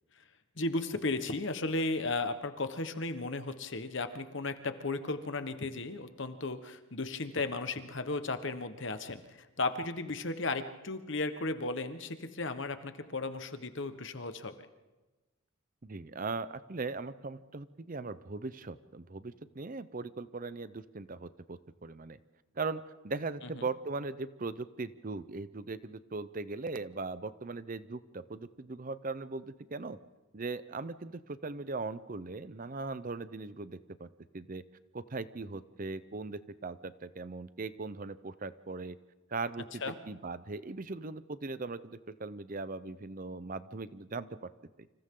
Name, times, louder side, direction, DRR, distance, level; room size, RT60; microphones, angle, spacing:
voice 1, 0.6-14.5 23.5-23.7 39.8-40.0, left 3 dB, 55° left, 9 dB, 1.3 m, -35 dB
voice 2, 15.8-22.2 22.6-30.0 30.3-34.1 34.3-34.6 34.9-39.0 39.3-44.5, right 3 dB, 40° right, 14 dB, 0.6 m, -39 dB
29.0 x 26.5 x 3.8 m, 1.2 s
head